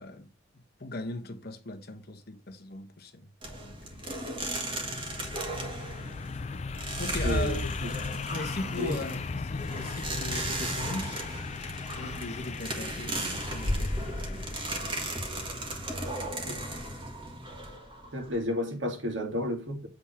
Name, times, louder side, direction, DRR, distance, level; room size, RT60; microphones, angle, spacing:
voice 1, 0.0-3.3 3.6-4.0 7.0-7.6 8.3-11.3 12.0-14.7, left 2 dB, 55° left, 1.1 m, -39 dB
sound 1, 3.4-18.4, right 1 dB, 25° right, 1.5 m, -35 dB
sound 2, 3.8-15.5, left 4 dB, 35° left, 0.4 m, -38 dB
voice 2, 7.2-7.9 8.8-9.0 16.5-16.6 18.1-19.9, left 1 dB, 80° right, 1.9 m, -32 dB
8.1 x 3.6 x 5.7 m
head